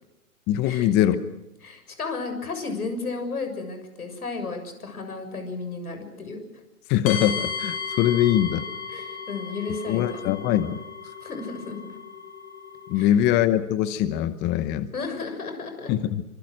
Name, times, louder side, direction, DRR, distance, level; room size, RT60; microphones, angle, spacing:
voice 1, 0.5-1.2 6.9-8.7 9.9-10.8 12.9-14.9 15.9-16.2, left 11 dB, 25° left, 13 dB, 0.9 m, -22 dB
voice 2, 1.6-6.4 8.9-10.2 11.2-12.0 12.9-13.1 14.9-15.9, left 4 dB, 80° left, 6 dB, 7.2 m, -33 dB
sound 1, 7.1-13.0, left 6 dB, 40° left, 7.5 m, -35 dB
25.5 x 25.0 x 6.5 m, 0.91 s
hypercardioid pair, 125°, 44 cm